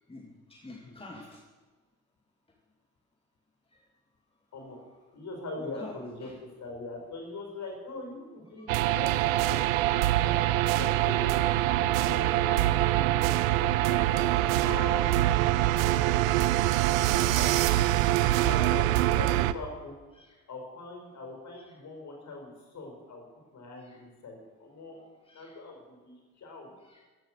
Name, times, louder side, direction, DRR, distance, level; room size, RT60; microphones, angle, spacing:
voice 1, 0.1-1.4 5.6-5.9 6.2-6.4 8.6-8.7 10.1-10.2 11.0-11.4 12.1-12.3 12.7-13.0 13.7-13.9 15.7-15.8 16.9-17.2 18.1-18.2 20.1-20.4 23.8-24.0 25.3-25.6 26.8-27.0, left 2 dB, 10° left, 0 dB, 2.3 m, -49 dB
voice 2, 5.1-9.6 9.9-14.3 14.6-15.4 17.3-17.9 18.4-20.0 20.5-23.2 23.5-25.0 25.3-26.7, left 2 dB, 40° left, 1 dB, 5.4 m, -42 dB
sound 1, 8.7-19.5, right 15 dB, 65° right, 0.7 m, -24 dB
15.5 x 11.0 x 6.4 m, 1.3 s
figure-of-eight pair, 50°, 43 cm